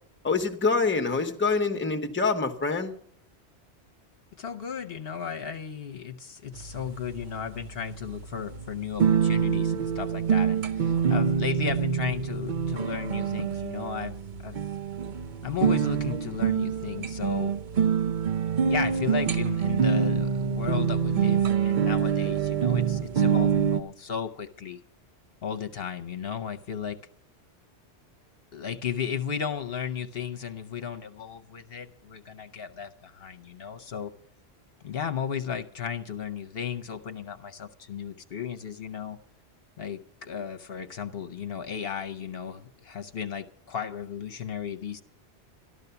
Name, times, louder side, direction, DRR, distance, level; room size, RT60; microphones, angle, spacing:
voice 1, 0.2-2.9, left 4 dB, 10° left, 6 dB, 0.9 m, -25 dB
voice 2, 4.4-14.1 14.4-14.6 15.4-17.5 18.6-24.8 25.4-27.0 28.5-34.1 34.8-39.2 39.8-45.0, left 7 dB, 60° left, 8 dB, 0.9 m, -35 dB
sound 1, 6.5-23.8, right 7 dB, 50° right, 0.8 m, -26 dB
13.0 x 12.0 x 6.8 m, 0.63 s
omnidirectional pair, 1.1 m